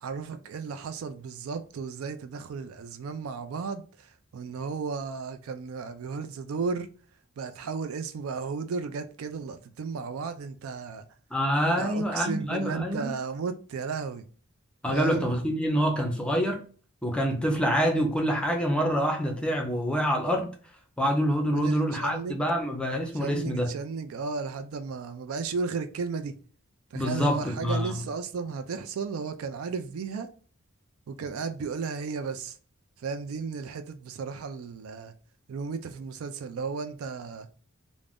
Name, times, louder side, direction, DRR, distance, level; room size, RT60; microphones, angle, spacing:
voice 1, 0.0-4.1 4.3-6.9 7.4-11.0 11.8-14.2 14.9-15.4 21.5-22.4 23.2-26.4 26.9-30.3 31.1-32.5 33.0-35.1 35.5-37.5, right 5 dB, 75° right, 0.4 m, -34 dB
voice 2, 11.3-13.1 14.8-16.6 17.0-20.5 21.0-23.7 26.9-28.0, equal, 5° left, 0.5 m, -26 dB
2.5 x 2.0 x 3.3 m
head